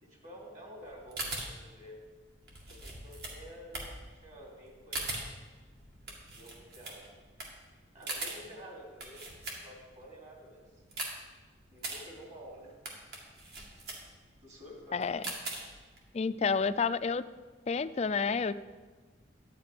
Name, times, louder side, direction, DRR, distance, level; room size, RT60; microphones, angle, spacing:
voice 1, 0.0-2.0 2.7-3.9 4.2-5.3 6.0-7.0 7.9-10.8 11.7-12.8 14.4-15.1, equal, 40° right, -2 dB, 3.0 m, -50 dB
sound 1, 0.9-10.0 10.4-16.0, right 2 dB, 55° right, 2.2 m, -41 dB
voice 2, 14.9-15.2 16.1-17.2 17.7-18.5, left 5 dB, 35° left, 14 dB, 0.3 m, -29 dB
12.0 x 9.0 x 5.1 m, 1.4 s
head